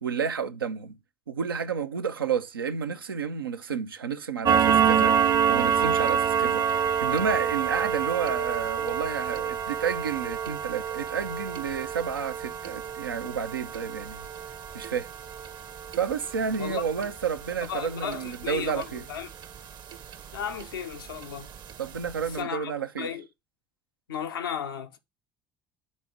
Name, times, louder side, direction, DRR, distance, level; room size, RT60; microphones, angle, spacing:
voice 1, 0.0-1.0 1.3-5.2 5.5-14.3 14.7-15.1 15.9-19.0 21.8-23.1, right 6 dB, 80° right, 0.6 m, -31 dB
sound 1, 4.5-19.6 19.9-20.1 20.6-20.7 21.1-21.2 21.7-21.8 22.1-22.2, right 7 dB, 40° right, 0.8 m, -27 dB
voice 2, 17.7-19.3 20.3-21.5 22.3-23.3 24.1-25.0, left 8 dB, 75° left, 0.8 m, -34 dB
7.3 x 4.1 x 6.1 m
figure-of-eight pair, 60°, 12 cm